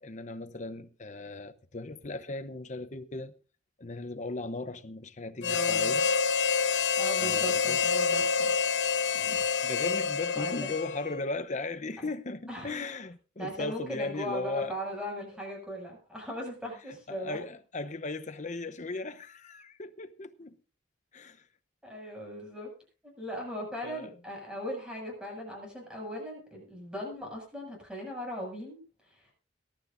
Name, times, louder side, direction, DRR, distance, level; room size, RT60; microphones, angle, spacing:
voice 1, 0.0-3.4 3.8-6.0 7.2-7.8 9.6-14.8 17.1-20.6 21.1-21.4 23.8-24.1, left 2 dB, 40° left, 0.9 m, -37 dB
Harmonica, 5.4-11.2, left 6 dB, 65° left, 0.8 m, -27 dB
voice 2, 5.4-6.1 7.0-8.5 9.1-9.5 10.4-10.7 12.5-12.9 13.4-17.4 21.8-22.7 23.0-29.3, equal, 5° right, 7.1 m, -39 dB
23.0 x 12.0 x 2.7 m
head